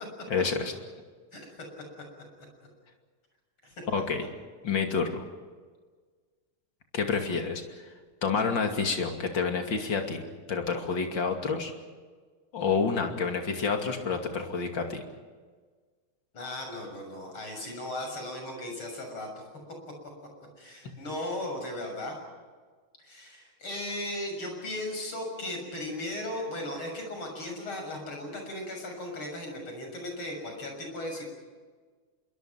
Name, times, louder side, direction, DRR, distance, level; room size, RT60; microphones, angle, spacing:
voice 1, 0.3-0.7 3.9-4.3 4.6-5.1 6.9-7.6 8.2-11.7 12.5-15.0, left 5 dB, 60° left, 4 dB, 3.2 m, -28 dB
voice 2, 16.3-19.4 20.6-22.2 23.0-31.3, left 1 dB, 80° left, 2 dB, 7.5 m, -36 dB
26.5 x 23.5 x 5.9 m, 1.5 s
omnidirectional pair, 2.3 m